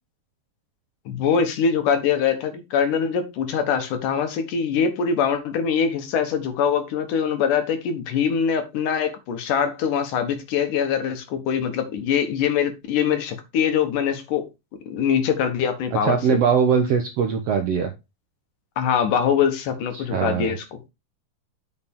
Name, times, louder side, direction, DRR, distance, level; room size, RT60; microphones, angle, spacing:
voice 1, 1.1-14.5 14.9-16.4 18.8-20.6, left 7 dB, 70° left, 7 dB, 2.8 m, -23 dB
voice 2, 16.0-17.9 19.9-20.5, right 6 dB, 70° right, 5 dB, 1.5 m, -21 dB
9.0 x 5.7 x 3.7 m, 0.24 s
omnidirectional pair, 3.9 m